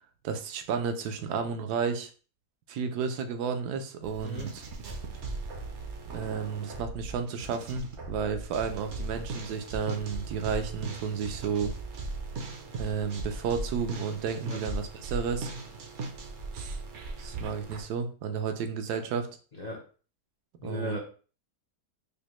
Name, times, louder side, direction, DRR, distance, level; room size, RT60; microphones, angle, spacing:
voice 1, 0.2-2.1 2.7-4.6 6.1-11.7 12.7-15.5 16.5-16.8 17.2-19.3 20.6-21.0, right 6 dB, 75° right, 7 dB, 1.1 m, -32 dB
sound 1, 4.0-17.8, right 3 dB, 60° right, 0.8 m, -38 dB
voice 2, 20.6-21.0, left 1 dB, 75° left, -2 dB, 0.3 m, -36 dB
5.1 x 2.1 x 3.0 m, 0.38 s
omnidirectional pair, 1.7 m